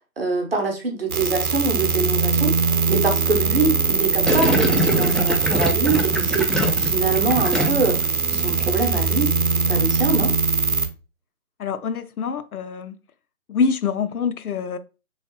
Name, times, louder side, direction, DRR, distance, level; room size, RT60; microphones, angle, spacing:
voice 1, 0.2-10.3, right 3 dB, 40° right, 0.8 m, -24 dB
sound 1, 1.1-10.9, right 4 dB, 75° right, 0.8 m, -21 dB
Gurgling, 4.3-8.0 8.3-8.7, equal, ahead, 0.3 m, -24 dB
voice 2, 11.6-13.0 13.5-14.8, left 5 dB, 80° left, 0.5 m, -25 dB
3.3 x 3.1 x 2.9 m
figure-of-eight pair, 165°, 44 cm